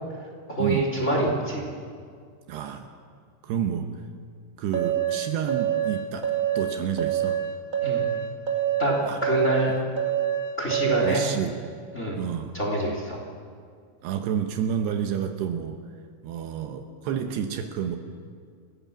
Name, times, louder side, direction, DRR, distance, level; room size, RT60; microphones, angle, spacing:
voice 1, 0.5-1.7 7.8-8.0 8.8-9.7 10.6-11.2 11.9-12.2 12.5-13.2, right 1 dB, 20° left, 0 dB, 3.1 m, -25 dB
voice 2, 2.5-2.9 3.4-4.0 4.6-7.4 9.1-9.2 11.0-11.6 12.2-12.6 14.0-15.8 16.2-18.0, right 8 dB, 75° right, 6 dB, 3.0 m, -29 dB
sound 1, 4.7-11.3, right 10 dB, 30° right, 1.6 m, -26 dB
29.0 x 15.0 x 7.2 m, 2.1 s
omnidirectional pair, 5.1 m